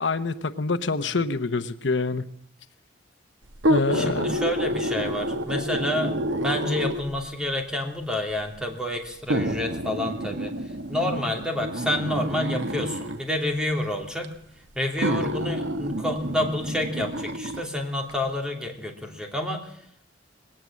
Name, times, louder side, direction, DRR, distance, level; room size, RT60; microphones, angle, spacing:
voice 1, 0.0-2.2 3.7-4.3, left 3 dB, 75° left, 11 dB, 0.9 m, -26 dB
sound 1, 3.5-7.2 8.1-8.2 9.3-13.2 14.2-14.3 15.0-17.7 18.1-18.2, right 1 dB, 85° right, 1.3 m, -28 dB
voice 2, 3.9-14.3 14.7-19.8, left 1 dB, 5° right, 2 dB, 3.0 m, -29 dB
20.0 x 17.5 x 7.5 m, 0.68 s
head